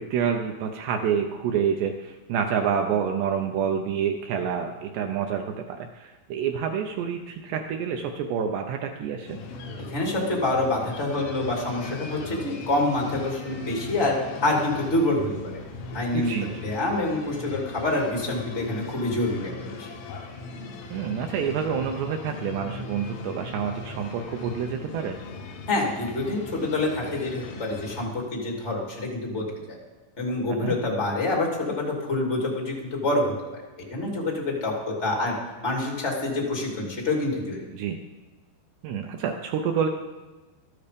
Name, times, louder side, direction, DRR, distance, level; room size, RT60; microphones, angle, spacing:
voice 1, 0.0-9.4 16.1-16.7 20.9-25.2 30.5-30.8 37.7-38.0 38.8-39.9, right 7 dB, 80° right, 4 dB, 2.4 m, -28 dB
sound 1, 9.3-28.1, left 3 dB, 75° left, 3.7 m, -39 dB
voice 2, 9.9-14.1 14.4-15.6 15.9-19.9 25.7-29.8 30.2-33.2 33.5-33.6 33.9-35.3 35.6-37.6, left 2 dB, 25° left, -1 dB, 1.4 m, -27 dB
13.0 x 12.5 x 5.2 m, 1.2 s
omnidirectional pair, 5.6 m